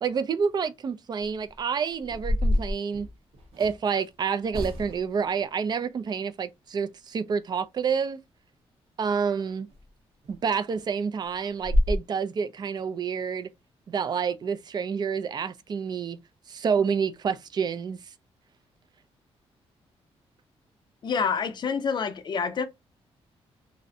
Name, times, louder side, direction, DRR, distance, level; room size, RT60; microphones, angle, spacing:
voice 1, 0.0-3.1 3.6-8.2 9.0-9.7 10.3-13.5 13.9-16.2 16.5-18.0, right 6 dB, 40° right, 0.3 m, -28 dB
sound 1, 1.5-1.6 2.0-3.8 4.5-5.2 9.7-9.8 10.2-10.4 10.7-10.8 11.2-11.3 11.6-12.0, left 1 dB, 70° right, 0.8 m, -27 dB
voice 2, 21.0-22.7, left 6 dB, 45° left, 0.5 m, -27 dB
2.5 x 2.1 x 2.6 m
cardioid pair, 115°, 11 cm